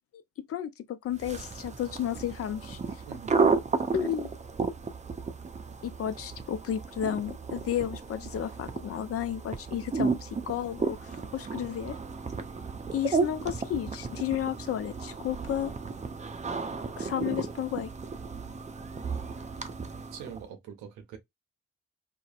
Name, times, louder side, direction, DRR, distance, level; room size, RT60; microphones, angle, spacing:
voice 1, 0.5-2.8 3.9-4.3 5.8-12.0 12.9-15.7 17.0-17.9, left 10 dB, 50° left, 0.5 m, -32 dB
sound 1, 1.1-20.5, right 4 dB, 25° right, 0.5 m, -33 dB
voice 2, 3.1-3.4 20.1-21.2, right 7 dB, 80° right, 0.7 m, -43 dB
2.6 x 2.1 x 2.4 m
hypercardioid pair, 40°, 30 cm